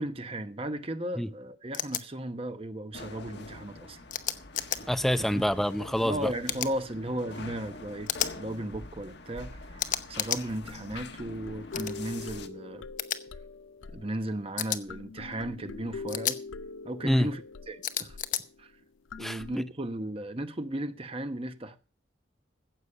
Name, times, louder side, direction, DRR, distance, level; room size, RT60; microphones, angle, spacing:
voice 1, 0.0-4.0 5.3-5.4 6.0-12.8 13.9-16.4 16.8-17.4 17.7-18.2 18.6-18.7 19.2-21.8, right 1 dB, 30° right, 0.9 m, -35 dB
sound 1, 1.7-2.0 4.1-4.8 6.5-6.7 8.1-8.3 9.8-10.4 11.7-11.9 13.0-13.2 14.6-14.8 16.1-16.4 17.8-18.4, left 10 dB, 40° left, 0.9 m, -31 dB
sound 2, 2.9-12.5, left 3 dB, 55° left, 1.2 m, -45 dB
voice 2, 4.9-6.3 17.0-17.3 19.2-19.6, equal, ahead, 0.5 m, -27 dB
sound 3, 10.7-19.6, left 4 dB, 80° left, 0.6 m, -43 dB
15.0 x 8.2 x 5.5 m
head